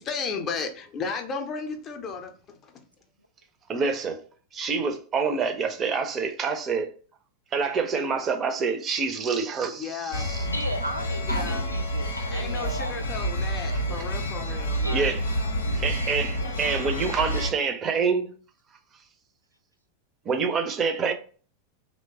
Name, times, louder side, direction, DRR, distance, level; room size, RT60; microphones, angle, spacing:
voice 1, 0.0-2.8 9.7-10.3 11.3-11.6 12.3-15.2, left 5 dB, 30° left, 0.5 m, -34 dB
voice 2, 3.7-4.2 4.5-6.9 7.5-10.5 14.9-15.2 15.7-18.3 20.3-21.1, right 5 dB, 25° right, 0.5 m, -27 dB
sound 1, 10.1-17.5, equal, 75° left, 0.5 m, -29 dB
voice 3, 10.5-14.1 14.8-15.1 15.6-16.0, right 1 dB, 90° right, 0.3 m, -36 dB
3.0 x 2.1 x 2.8 m
figure-of-eight pair, 90°, 0 cm